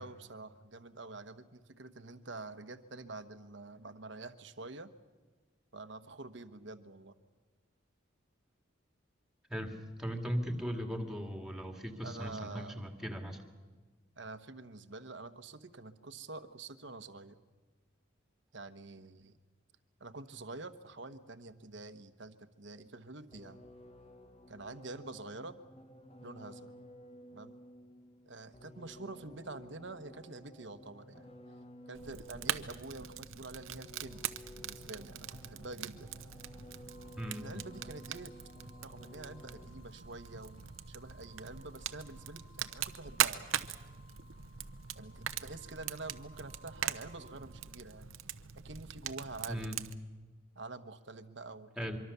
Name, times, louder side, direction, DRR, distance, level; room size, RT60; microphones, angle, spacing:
voice 1, 0.0-4.9 5.7-7.1 12.0-12.8 14.2-17.4 18.5-19.4 20.0-23.7 24.5-25.6 26.2-26.7 27.3-27.6 28.3-31.3 31.9-36.3 37.4-38.3 38.8-43.4 44.9-48.1 48.5-49.7 50.5-51.9, right 3 dB, 60° right, 11 dB, 1.2 m, -47 dB
voice 2, 9.5-13.4 37.2-37.5 49.5-49.8 51.8-52.0, equal, 5° right, 4 dB, 2.2 m, -38 dB
sound 1, 23.3-40.0, equal, 30° left, 1.2 m, -54 dB
Fire, 32.0-49.9, right 10 dB, 85° right, 0.9 m, -41 dB
sound 2, 36.9-47.5, left 1 dB, 55° left, 5.8 m, -62 dB
24.5 x 24.0 x 6.9 m, 1.4 s
head